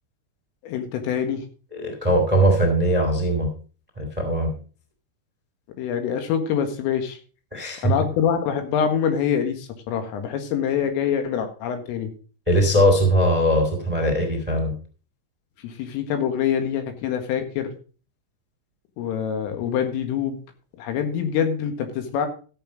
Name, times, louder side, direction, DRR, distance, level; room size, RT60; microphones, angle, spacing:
voice 1, 0.6-1.4 5.8-7.2 7.8-12.1 15.6-17.7 19.0-20.4 20.8-22.3, left 8 dB, 85° left, 7 dB, 4.3 m, -25 dB
voice 2, 1.7-3.5 4.0-4.5 7.5-7.9 12.5-14.7, equal, 15° right, 3 dB, 1.2 m, -20 dB
14.0 x 7.0 x 5.2 m, 0.38 s
omnidirectional pair, 5.8 m